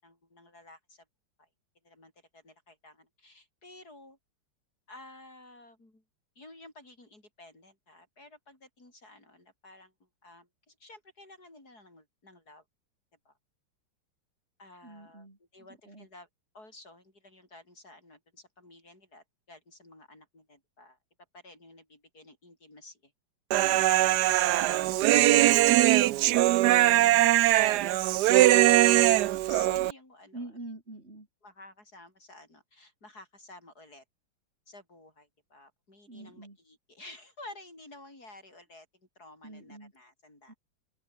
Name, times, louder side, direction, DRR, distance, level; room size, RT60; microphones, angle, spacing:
voice 1, 0.0-1.1 1.4-1.5 1.8-4.2 4.9-6.0 6.4-12.6 13.3-13.4 14.6-16.3 16.5-21.0 21.3-23.1 23.7-24.9 25.1-26.5 27.5-28.0 28.4-30.5 31.4-34.0 34.7-40.6, left 2 dB, 45° left, 7.3 m, -52 dB
voice 2, 14.8-15.4 15.9-16.1 30.3-31.3 36.1-36.6 39.4-39.9 40.5-40.6, right 2 dB, 30° right, 4.5 m, -44 dB
Human voice, 23.5-29.9, right 15 dB, 80° right, 0.9 m, -21 dB
omnidirectional pair, 2.4 m